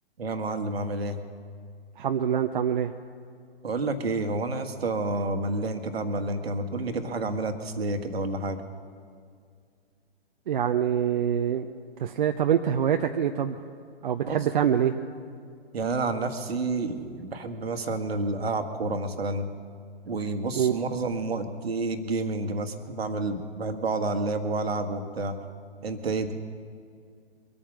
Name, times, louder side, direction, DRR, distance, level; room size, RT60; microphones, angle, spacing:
voice 1, 0.2-1.2 3.6-8.6 14.2-14.4 15.7-19.5 20.1-25.4 25.8-26.3, right 2 dB, 65° right, 8 dB, 1.4 m, -29 dB
voice 2, 2.0-2.9 10.5-11.7 12.0-13.5 14.0-15.0 20.5-20.8, right 9 dB, 50° right, 6 dB, 0.6 m, -25 dB
23.0 x 8.9 x 6.0 m, 2.2 s
figure-of-eight pair, 125°, 32 cm